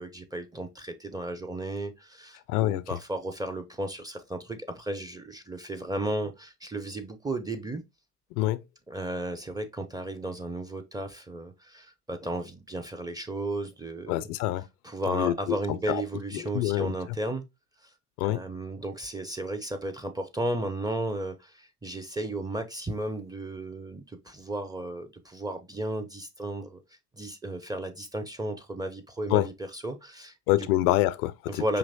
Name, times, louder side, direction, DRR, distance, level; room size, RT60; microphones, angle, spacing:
voice 1, 0.0-7.8 8.9-14.2 14.8-17.4 18.2-26.8 27.2-30.7 31.5-31.8, right 1 dB, 10° right, 0.5 m, -34 dB
voice 2, 2.5-2.8 8.4-8.6 14.1-14.6 15.1-15.3 15.9-16.0 16.4-17.0 18.2-18.4 29.3-29.5 30.5-31.6, left 15 dB, 70° left, 0.5 m, -26 dB
5.1 x 3.0 x 2.6 m
hypercardioid pair, 65°, 46 cm